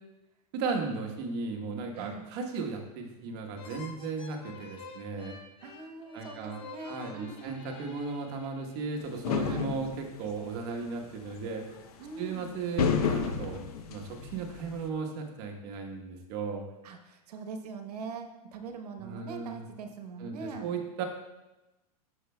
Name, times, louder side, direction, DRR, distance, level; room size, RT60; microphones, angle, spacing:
voice 1, 0.5-5.3 6.1-11.6 12.2-13.6 13.9-16.6 19.0-19.6 20.2-21.0, right 4 dB, 45° right, 3 dB, 1.1 m, -36 dB
sound 1, 3.5-9.1, left 5 dB, 25° left, 0.6 m, -49 dB
voice 2, 5.6-8.0 9.4-9.7 12.0-12.5 16.8-20.7, right 4 dB, 85° right, 6 dB, 1.0 m, -42 dB
sound 2, 9.2-10.2 11.3-11.4 12.6-14.7, left 6 dB, 75° left, 0.8 m, -30 dB
9.6 x 6.6 x 2.2 m, 1.0 s
supercardioid pair, 155°, 20 cm